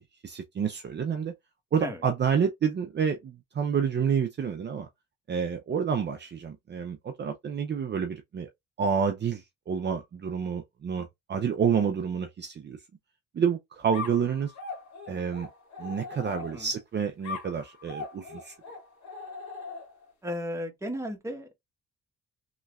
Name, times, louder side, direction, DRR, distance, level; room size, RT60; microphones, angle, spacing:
voice 1, 0.2-1.3 1.7-4.9 5.3-8.5 8.8-12.8 13.3-14.5 15.1-15.5 15.8-18.5, right 7 dB, 35° right, 0.6 m, -29 dB
sound 1, 13.9-16.8 17.2-20.1, left 4 dB, 65° left, 1.8 m, -40 dB
voice 2, 20.2-21.5, equal, 10° right, 1.1 m, -34 dB
3.2 x 3.0 x 2.4 m
cardioid pair, 90°, 30 cm